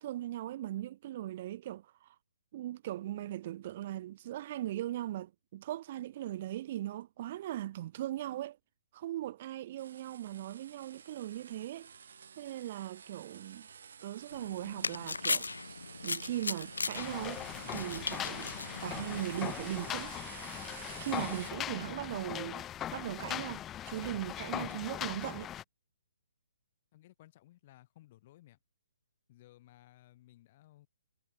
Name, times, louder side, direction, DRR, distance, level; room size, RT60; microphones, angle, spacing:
voice 1, 0.0-2.1 2.5-8.6 8.9-11.9 12.4-13.7 14.0-17.4 17.7-18.5 18.8-20.1 21.0-22.6 22.9-25.5, right 13 dB, 40° right, 1.3 m, -39 dB
sound 1, 9.8-21.5, right 6 dB, 65° right, 3.0 m, -50 dB
sound 2, 14.3-19.5, left 4 dB, 85° left, 1.3 m, -38 dB
sound 3, 16.9-25.6, left 11 dB, 15° left, 0.4 m, -40 dB
voice 2, 26.9-28.6 29.3-30.9, left 15 dB, 35° left, 7.5 m, -59 dB
hypercardioid pair, 145°, 0 cm